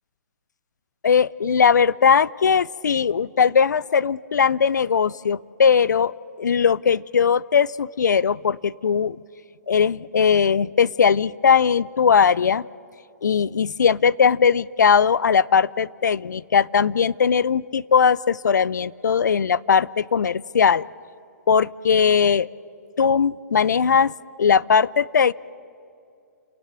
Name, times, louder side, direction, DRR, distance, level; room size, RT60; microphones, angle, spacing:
voice 1, 1.0-6.1 6.4-9.2 9.7-12.6 13.2-20.9 21.5-22.5 23.0-24.1 24.4-25.3, left 6 dB, 80° left, 21 dB, 0.5 m, -19 dB
30.0 x 10.5 x 8.8 m, 2.5 s
hypercardioid pair, 135°, 9 cm